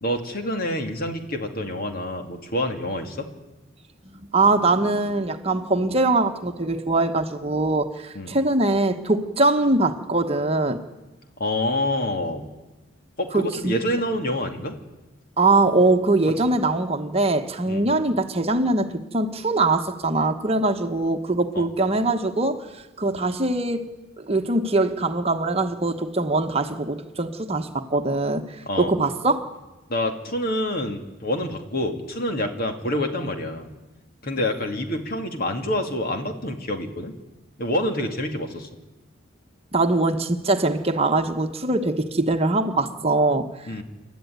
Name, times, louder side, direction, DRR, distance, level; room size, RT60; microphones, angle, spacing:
voice 1, 0.0-3.3 8.1-8.3 11.4-12.5 13.2-14.7 16.4-16.5 17.7-17.8 21.5-21.7 28.7-28.9 29.9-33.7 34.2-37.1 37.6-38.7 43.7-43.8, left 1 dB, 50° left, 2.4 m, -27 dB
voice 2, 4.0-10.8 13.3-13.8 15.4-23.9 24.2-29.5 39.7-43.8, right 2 dB, 30° right, 1.2 m, -22 dB
28.5 x 12.5 x 9.4 m
head